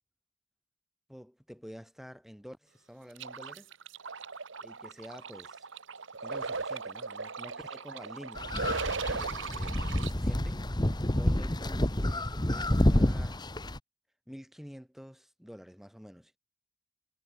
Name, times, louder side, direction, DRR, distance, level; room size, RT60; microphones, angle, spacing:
voice 1, 1.1-3.7 4.6-5.7 6.2-8.5 8.8-13.4 14.3-16.4, equal, ahead, 5.6 m, -49 dB
sound 1, 3.2-10.1, right 4 dB, 65° right, 1.5 m, -38 dB
sound 2, 8.4-13.8, left 1 dB, 20° left, 1.4 m, -28 dB
head